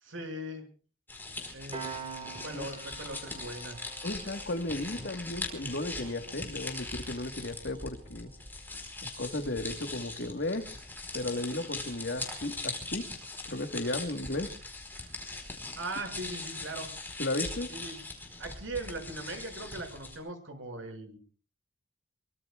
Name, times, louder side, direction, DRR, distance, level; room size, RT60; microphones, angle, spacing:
voice 1, 0.0-0.7 1.5-3.8 15.8-16.9 17.7-18.0 18.4-21.2, right 2 dB, 85° right, 6.6 m, -40 dB
sound 1, 1.1-20.2, left 3 dB, 10° left, 4.4 m, -41 dB
Piano, 1.7-12.8, right 5 dB, 30° right, 4.2 m, -50 dB
voice 2, 4.0-8.3 9.0-10.7 11.1-13.1 13.4-14.5 17.2-17.7, left 2 dB, 60° left, 1.6 m, -35 dB
25.0 x 24.0 x 2.4 m
head